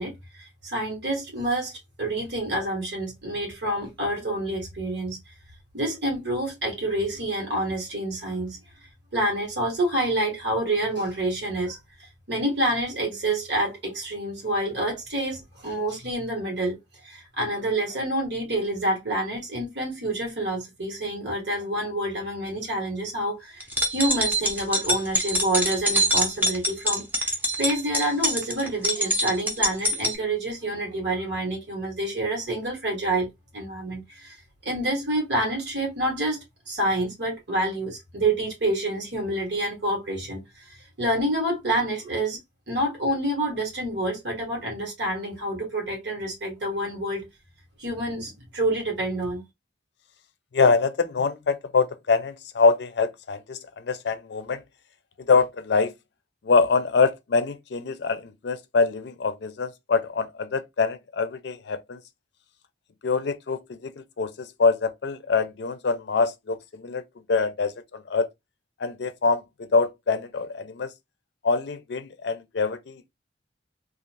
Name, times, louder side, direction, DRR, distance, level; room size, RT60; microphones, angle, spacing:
voice 1, 0.0-5.3 5.7-8.6 9.1-16.8 17.0-23.7 23.9-33.3 33.5-36.4 36.7-42.4 42.7-47.3 47.8-49.4, right 1 dB, 75° right, 1.3 m, -28 dB
sound 1, 23.6-30.2, equal, 10° right, 0.7 m, -24 dB
voice 2, 50.5-54.6 55.2-55.9 56.4-62.0 63.0-67.0 67.3-68.3 68.8-70.9 71.4-73.1, left 4 dB, 65° left, 0.4 m, -24 dB
2.5 x 2.4 x 3.2 m
head